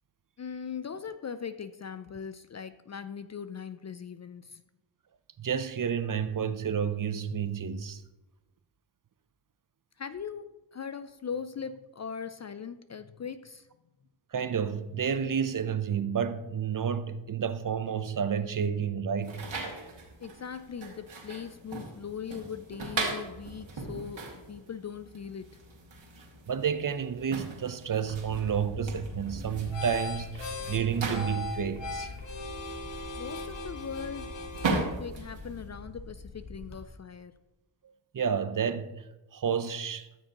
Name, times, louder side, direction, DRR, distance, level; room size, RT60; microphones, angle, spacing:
voice 1, 0.4-4.6 10.0-13.7 20.2-25.6 33.2-34.3 34.7-37.4, left 7 dB, 35° left, 0.4 m, -40 dB
voice 2, 5.4-8.0 14.3-19.4 26.5-32.1 38.1-39.1 39.3-40.1, right 7 dB, 40° right, 0.6 m, -30 dB
sound 1, 19.2-35.7, right 3 dB, 65° right, 2.2 m, -39 dB
sound 2, 28.0-36.9, left 2 dB, 60° left, 1.6 m, -40 dB
13.5 x 6.5 x 2.9 m
cardioid pair, 55°, 49 cm